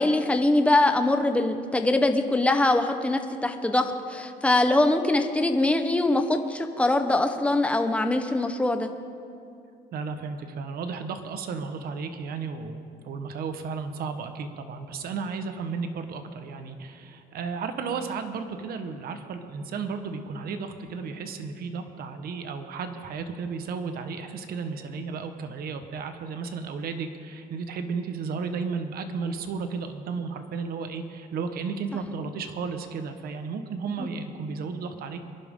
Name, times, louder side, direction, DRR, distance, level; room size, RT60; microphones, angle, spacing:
voice 1, 0.0-8.9 34.0-34.1, left 2 dB, 5° left, 6 dB, 1.0 m, -23 dB
voice 2, 9.9-35.2, right 5 dB, 65° right, 8 dB, 1.3 m, -33 dB
24.0 x 11.5 x 3.8 m, 2.5 s
cardioid pair, 110°, 17 cm